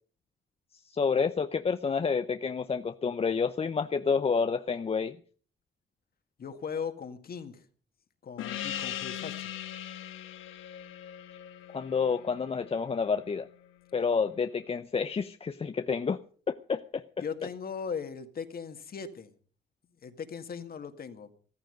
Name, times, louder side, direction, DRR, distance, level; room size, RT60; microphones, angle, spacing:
voice 1, 0.9-5.2 11.7-13.5 13.9-16.2 16.5-17.0, left 5 dB, 30° left, 0.7 m, -29 dB
voice 2, 6.4-7.7 8.2-9.5 17.2-19.3 20.0-21.3, left 6 dB, 50° left, 2.0 m, -38 dB
Gong, 8.4-13.4, left 11 dB, 85° left, 1.5 m, -40 dB
14.5 x 14.0 x 5.2 m
cardioid pair, 90°, 20 cm